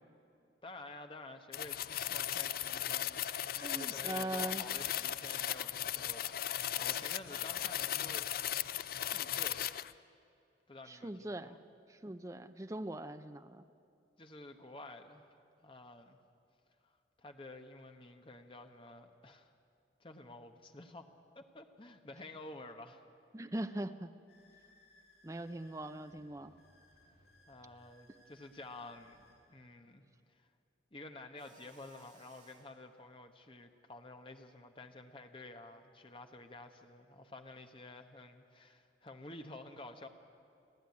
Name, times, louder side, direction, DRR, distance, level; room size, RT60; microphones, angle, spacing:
voice 1, 0.6-8.3 9.0-9.7 10.7-11.6 14.2-15.3 15.6-16.2 16.8-19.5 20.0-21.1 21.3-23.0 27.5-29.2 29.5-30.5 30.9-40.1, left 2 dB, 30° left, 6 dB, 1.0 m, -51 dB
sound 1, 1.5-9.9, left 11 dB, 50° left, 0.4 m, -37 dB
voice 2, 3.5-4.7 10.9-11.6 11.9-13.6 23.3-24.1 25.2-26.5, right 1 dB, 15° right, 10 dB, 0.5 m, -41 dB
sound 2, 24.3-29.3, left 1 dB, 65° left, 6.4 m, -65 dB
Mechanisms, 31.4-32.8, right 3 dB, 40° right, 2.4 m, -62 dB
29.5 x 11.0 x 9.7 m, 2.7 s
head